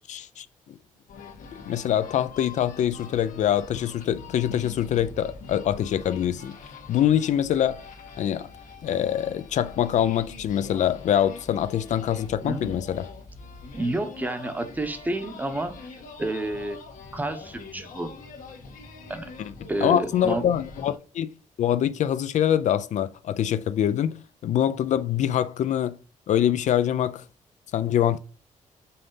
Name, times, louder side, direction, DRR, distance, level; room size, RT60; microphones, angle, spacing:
voice 1, 0.1-0.5 1.7-6.6 6.9-7.8 8.2-8.5 8.8-13.0 19.4-19.5 19.8-21.3 21.6-24.2 24.4-26.0 26.3-27.2 27.7-28.2, left 10 dB, 60° left, 0.4 m, -24 dB
sound 1, 1.1-21.0, left 4 dB, 80° left, 1.5 m, -44 dB
voice 2, 12.4-12.7 13.7-15.7 16.2-16.8 17.1-18.1 19.1-19.3 19.7-20.4, right 2 dB, 10° right, 0.8 m, -30 dB
5.6 x 4.0 x 5.4 m
wide cardioid pair, 170°, 14 cm